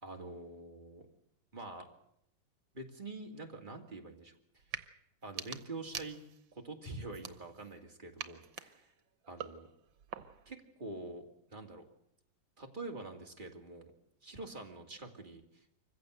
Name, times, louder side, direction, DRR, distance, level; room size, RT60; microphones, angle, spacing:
voice 1, 0.0-1.1 1.5-1.9 2.7-4.6 5.2-6.2 6.5-8.9 9.3-9.7 10.5-11.2 11.5-11.9 12.6-13.9 14.2-15.7, right 2 dB, 25° right, 2 dB, 2.6 m, -46 dB
sound 1, 4.6-4.9 5.2-6.5 7.1-7.8 8.2-10.5, right 9 dB, 85° right, 1.8 m, -46 dB
25.0 x 15.5 x 8.0 m, 0.76 s
omnidirectional pair, 2.0 m